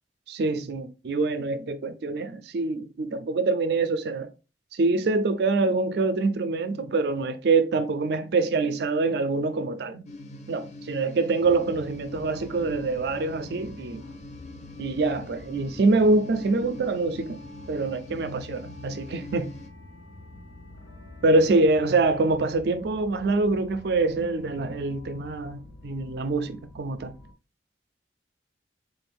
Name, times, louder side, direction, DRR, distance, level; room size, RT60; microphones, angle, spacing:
voice 1, 0.3-4.3 4.7-10.0 10.5-14.0 14.8-17.4 17.7-19.5 21.2-27.1, right 3 dB, 65° right, 0.4 m, -25 dB
sound 1, 10.1-19.7, left 2 dB, 40° left, 0.5 m, -44 dB
sound 2, 11.4-27.3, left 1 dB, 85° left, 0.7 m, -47 dB
3.7 x 2.5 x 3.3 m
head